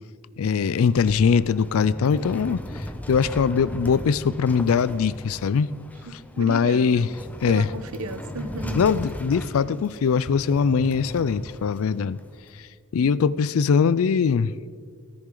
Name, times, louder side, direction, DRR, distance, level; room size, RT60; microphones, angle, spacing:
voice 1, 0.4-2.6 3.1-5.7 6.4-7.1 7.4-7.7 8.7-12.2 12.9-14.5, left 6 dB, 70° left, 18 dB, 0.4 m, -21 dB
sound 1, 0.6-12.5, left 1 dB, 5° left, 0.6 m, -37 dB
voice 2, 6.1-7.1 7.5-8.8 13.0-13.1, right 2 dB, 85° right, 10 dB, 0.9 m, -34 dB
17.5 x 10.5 x 3.9 m, 2.1 s
head